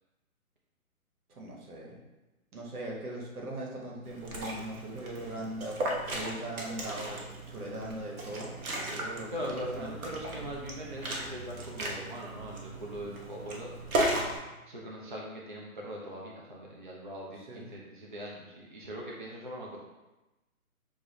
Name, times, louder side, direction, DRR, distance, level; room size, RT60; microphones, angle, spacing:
voice 1, 1.4-2.0 2.5-5.8 6.0-8.5 8.8-9.9 17.5-17.7, right 1 dB, 90° right, -2 dB, 1.5 m, -40 dB
Liquid, 4.0-14.4, right 1 dB, 75° right, 1.1 m, -36 dB
voice 2, 9.3-13.7 14.7-19.8, equal, 40° right, -3 dB, 0.4 m, -41 dB
6.3 x 2.5 x 3.0 m, 1.1 s
hypercardioid pair, 175°, 43 cm